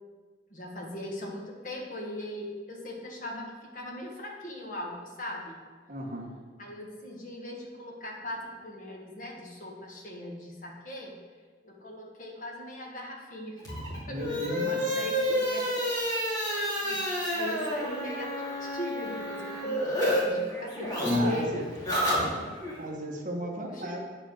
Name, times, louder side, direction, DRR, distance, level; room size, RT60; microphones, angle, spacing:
voice 1, 0.5-5.6 6.6-11.1 11.6-13.6 14.1-15.8 16.8-17.0 17.3-21.6 23.7-24.0, left 1 dB, 45° left, -1 dB, 1.5 m, -39 dB
voice 2, 5.9-6.4 14.1-15.0 16.8-17.0 21.1-21.5 22.8-24.0, right 1 dB, 45° right, 0 dB, 1.2 m, -35 dB
sound 1, 13.6-20.2 20.5-22.7, equal, 20° left, 2.5 m, -30 dB
9.1 x 5.0 x 6.3 m, 1.4 s
head